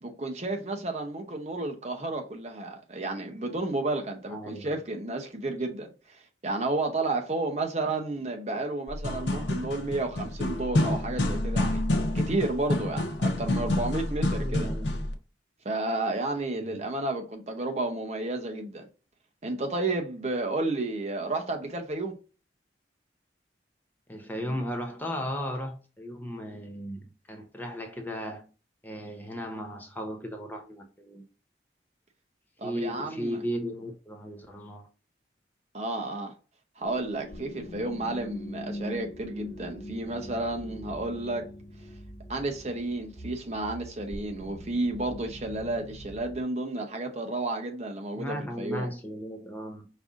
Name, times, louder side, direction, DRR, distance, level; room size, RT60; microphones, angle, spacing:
voice 1, 0.0-11.8 12.1-14.7 15.6-18.8 19.4-22.1 32.6-33.4 35.7-36.3 36.8-41.5 42.3-48.9, right 2 dB, 35° right, 0.8 m, -32 dB
voice 2, 4.3-4.8 14.4-15.0 16.6-16.8 24.1-28.5 28.8-31.2 32.6-34.9 48.2-49.9, equal, 10° left, 0.7 m, -36 dB
sound 1, 8.9-15.1, left 1 dB, 90° left, 0.8 m, -28 dB
sound 2, 36.8-46.4, equal, 55° left, 1.1 m, -42 dB
5.4 x 2.6 x 3.6 m
head